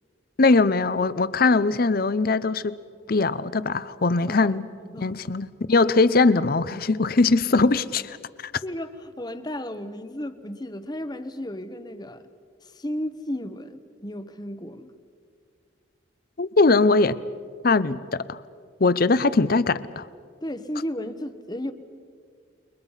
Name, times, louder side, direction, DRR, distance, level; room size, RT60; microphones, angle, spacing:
voice 1, 0.4-2.8 3.1-4.6 5.0-8.2 8.4-8.5 16.4-17.2 17.6-18.4 18.8-20.0, left 3 dB, 50° left, 0.7 m, -21 dB
voice 2, 4.3-5.1 8.6-12.2 12.6-15.0 20.4-21.7, left 1 dB, 20° left, 1.0 m, -34 dB
29.5 x 23.0 x 5.7 m
head